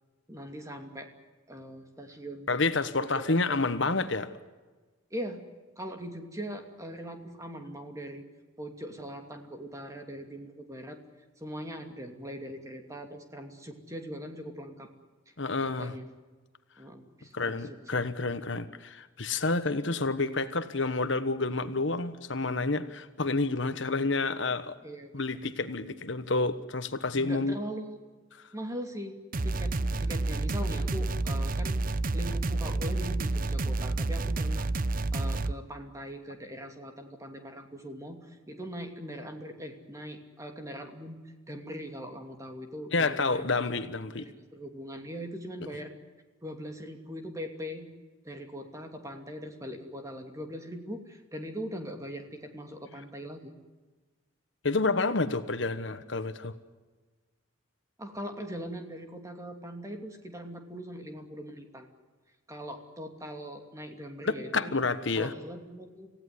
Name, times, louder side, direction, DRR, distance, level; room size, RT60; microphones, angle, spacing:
voice 1, 0.3-1.1 1.5-2.5 3.0-3.7 5.1-5.4 5.8-8.2 8.6-11.0 11.4-14.9 15.6-16.1 16.8-18.1 24.8-25.4 27.1-28.0 28.5-31.8 32.1-34.7 35.1-41.2 41.5-43.7 44.3-45.9 46.4-47.9 48.2-53.5 58.0-61.9 62.5-64.8 65.2-66.1, equal, 15° right, 4 dB, 2.7 m, -41 dB
voice 2, 2.5-4.3 15.4-15.9 17.3-24.8 25.1-27.6 42.9-44.3 54.6-56.5 64.2-65.3, left 3 dB, 60° left, 11 dB, 1.3 m, -29 dB
sound 1, 29.3-35.5, right 2 dB, 45° right, 0.7 m, -29 dB
27.0 x 16.5 x 9.7 m, 1.3 s
head